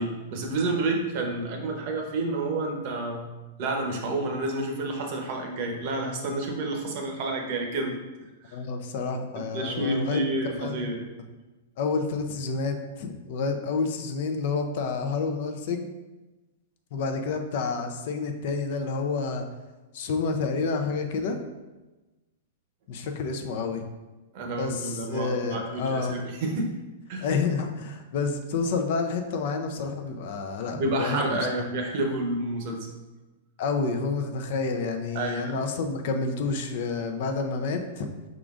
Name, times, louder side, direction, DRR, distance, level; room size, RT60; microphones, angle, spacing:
voice 1, 0.0-3.3 3.6-8.0 8.4-8.6 9.3-11.0 24.3-26.7 27.1-27.3 30.7-32.9 35.1-35.6, right 2 dB, 50° right, 2 dB, 0.8 m, -29 dB
voice 2, 8.5-10.2 10.6-10.9 11.8-15.9 16.9-19.5 19.9-21.4 22.9-23.8 24.6-26.2 27.2-31.4 33.6-38.1, left 4 dB, 55° left, 5 dB, 0.5 m, -29 dB
4.9 x 3.7 x 2.4 m, 1.1 s
hypercardioid pair, 145°, 0 cm